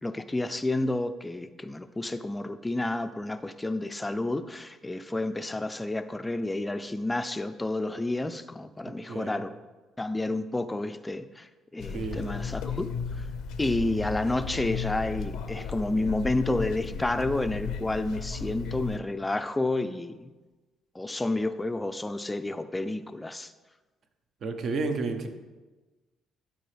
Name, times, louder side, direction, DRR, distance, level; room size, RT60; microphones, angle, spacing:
voice 1, 0.0-9.5 10.0-13.3 13.6-20.3 20.9-23.5, left 2 dB, 15° left, 11 dB, 0.4 m, -30 dB
voice 2, 9.1-9.4 11.8-12.3 24.4-25.3, right 3 dB, 60° right, 7 dB, 0.8 m, -31 dB
sound 1, 11.8-19.0, left 5 dB, 75° left, 0.5 m, -35 dB
11.5 x 4.2 x 3.3 m, 1.2 s
supercardioid pair, 65°, 0 cm